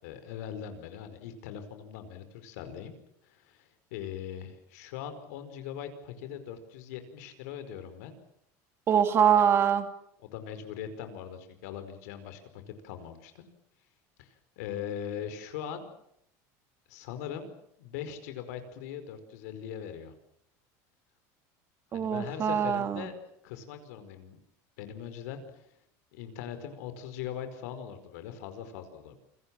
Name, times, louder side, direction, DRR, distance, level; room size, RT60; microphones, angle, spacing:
voice 1, 0.0-2.9 3.2-8.2 10.2-13.4 14.2-15.9 16.9-17.5 17.8-20.1 21.9-23.1 23.4-24.4 24.8-25.8 26.1-29.2, left 9 dB, 85° left, 9 dB, 4.9 m, -41 dB
voice 2, 8.9-9.9 21.9-23.1, right 8 dB, 30° right, 9 dB, 2.5 m, -24 dB
29.0 x 22.5 x 7.5 m, 0.75 s
cardioid pair, 155°, 8 cm